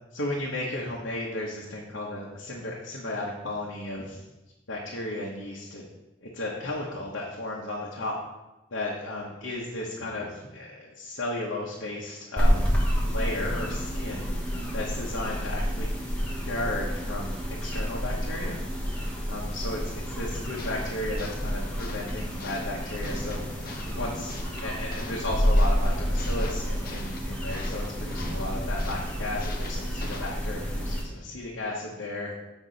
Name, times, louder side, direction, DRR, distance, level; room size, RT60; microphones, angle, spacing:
voice 1, 0.1-4.2 4.7-5.8 6.2-8.2 8.7-12.7 13.0-14.3 14.7-15.9 16.4-23.4 23.9-32.3, left 1 dB, 80° left, -4 dB, 1.1 m, -34 dB
sound 1, 12.4-31.0, equal, 5° left, 1.1 m, -29 dB
sound 2, 20.4-30.6, left 3 dB, 50° left, 0.8 m, -44 dB
8.1 x 5.3 x 4.0 m, 1.0 s
head